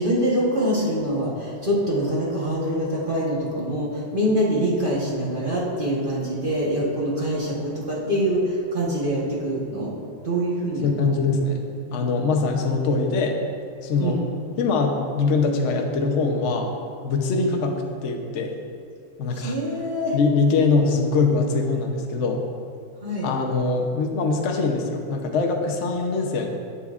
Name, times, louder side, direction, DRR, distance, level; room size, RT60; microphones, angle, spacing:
voice 1, 0.0-9.9 10.2-11.2 14.0-14.2 17.4-17.6 19.3-20.2 23.0-23.3, equal, 30° right, -6 dB, 1.0 m, -24 dB
voice 2, 10.8-11.6 11.9-13.4 13.8-14.2 14.6-16.7 17.0-18.5 19.2-19.5 20.1-22.4 23.2-26.5, left 4 dB, 70° left, 2 dB, 0.7 m, -23 dB
9.7 x 7.9 x 2.4 m, 2.3 s
omnidirectional pair, 2.2 m